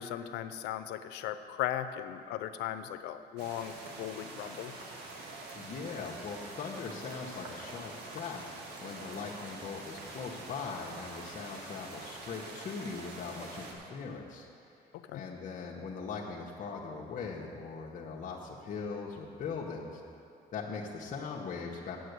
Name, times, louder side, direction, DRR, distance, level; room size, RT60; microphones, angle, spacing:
voice 1, 0.0-4.7 14.9-15.2, left 11 dB, 90° left, 11 dB, 0.6 m, -37 dB
sound 1, 3.4-13.7, right 3 dB, 80° right, 1.7 m, -45 dB
voice 2, 5.5-14.5 15.1-20.0 20.5-22.0, left 5 dB, 50° left, -3 dB, 1.1 m, -40 dB
7.8 x 7.7 x 8.1 m, 2.5 s
cardioid pair, 110°, 17 cm